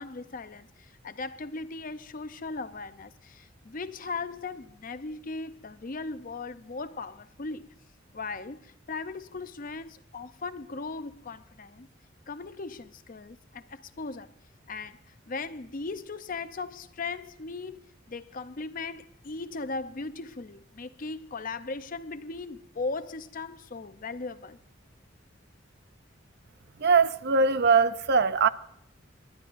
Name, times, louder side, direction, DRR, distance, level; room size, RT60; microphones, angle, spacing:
voice 1, 0.0-7.7 8.1-11.9 12.3-14.3 14.7-24.6, left 3 dB, 45° left, 0.6 m, -38 dB
voice 2, 26.8-28.5, right 5 dB, 55° right, 0.5 m, -21 dB
28.0 x 12.0 x 2.6 m
head